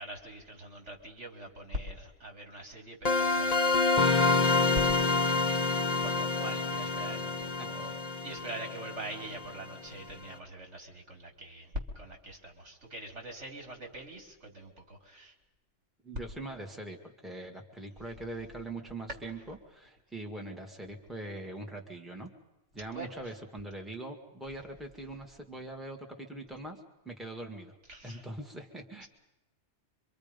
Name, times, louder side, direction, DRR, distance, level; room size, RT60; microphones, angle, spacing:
voice 1, 0.0-7.9 8.2-15.3 22.9-23.1 27.9-28.3 29.0-29.1, equal, 70° right, 2 dB, 3.5 m, -43 dB
sound 1, 3.0-9.7, left 3 dB, 35° left, 1.1 m, -27 dB
voice 2, 16.0-17.0 17.2-22.3 22.7-27.8 28.0-29.1, right 2 dB, ahead, 2 dB, 1.9 m, -42 dB
26.0 x 24.5 x 5.3 m, 0.98 s
omnidirectional pair, 1.2 m